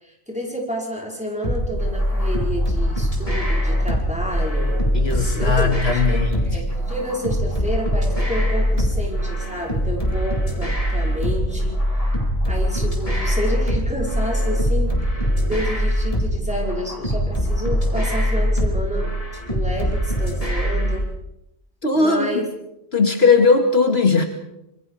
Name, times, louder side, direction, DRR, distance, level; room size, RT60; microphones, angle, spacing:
voice 1, 0.0-4.7 5.4-12.1 12.5-21.1 21.9-22.4, equal, 5° right, -2 dB, 5.4 m, -30 dB
sound 1, 1.4-21.0, equal, 30° left, 4.1 m, -22 dB
voice 2, 4.9-6.4 21.8-22.4 22.9-24.3, left 4 dB, 65° left, 4 dB, 2.5 m, -18 dB
26.5 x 23.5 x 5.0 m, 0.85 s
omnidirectional pair, 1.1 m